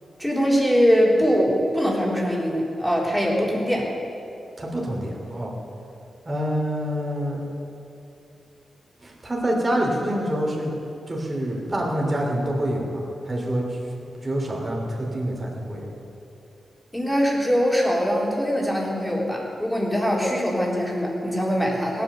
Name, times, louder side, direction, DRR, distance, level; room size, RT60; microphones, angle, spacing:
voice 1, 0.2-3.9 16.9-22.0, equal, 5° left, -3 dB, 3.3 m, -22 dB
voice 2, 4.6-5.5 6.2-7.4 9.0-10.7 11.1-13.8 14.2-15.9, equal, 25° right, -2 dB, 3.1 m, -26 dB
18.0 x 9.3 x 7.0 m, 2.8 s
wide cardioid pair, 95°, 0 cm